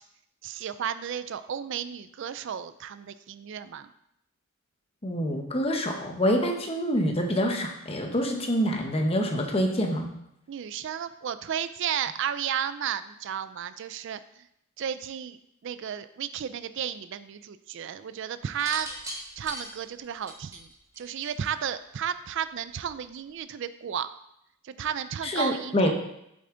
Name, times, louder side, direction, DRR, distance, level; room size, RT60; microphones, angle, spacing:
voice 1, 0.4-3.9 10.5-14.2 14.8-15.4 15.6-18.9 19.4-20.7 21.0-24.1 24.6-25.9, right 8 dB, 60° right, 13 dB, 0.4 m, -33 dB
voice 2, 5.0-10.1 25.2-25.9, equal, 30° left, 2 dB, 1.1 m, -26 dB
sound 1, 18.5-21.7 22.8-23.1, right 1 dB, 15° right, 1.4 m, -40 dB
7.7 x 6.9 x 3.8 m, 0.78 s
head